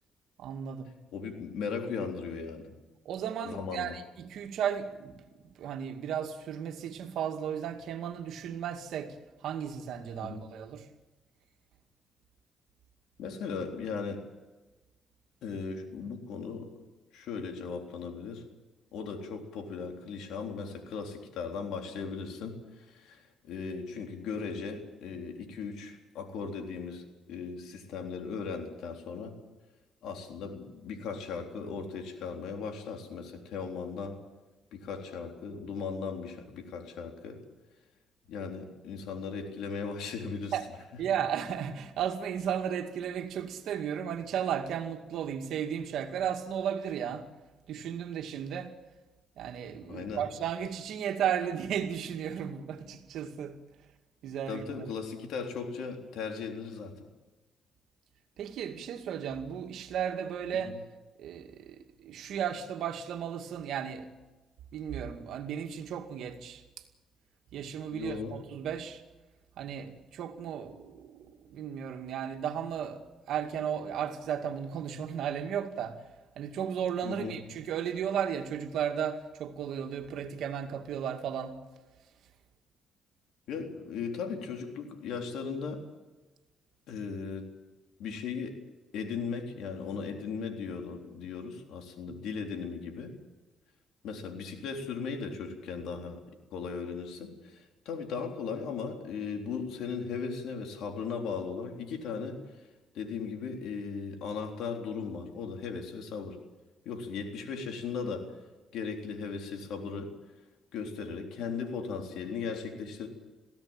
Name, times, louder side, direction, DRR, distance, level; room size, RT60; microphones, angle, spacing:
voice 1, 0.4-0.9 3.1-9.1 9.4-10.9 40.5-40.7 41.0-47.3 47.7-48.7 49.4-53.6 54.2-54.9 58.4-60.7 61.2-64.1 64.7-66.6 67.5-69.0 69.6-76.0 76.4-81.6 92.1-92.2, right 8 dB, 80° right, 2.2 m, -34 dB
voice 2, 1.1-2.7 3.4-4.0 10.2-10.4 13.2-14.2 15.4-16.7 17.1-18.4 18.9-22.6 22.9-29.4 30.0-34.2 34.7-37.4 38.3-40.6 49.9-50.2 54.5-56.9 60.7-60.8 67.9-68.4 77.0-77.3 83.5-85.8 86.9-87.5 88.0-88.6 88.9-93.1 94.0-96.2 96.5-102.4 102.9-106.4 106.9-108.3 108.7-110.1 110.7-113.1, left 5 dB, 85° left, 3.7 m, -37 dB
22.0 x 16.5 x 9.0 m
cardioid pair, 90°, 0 cm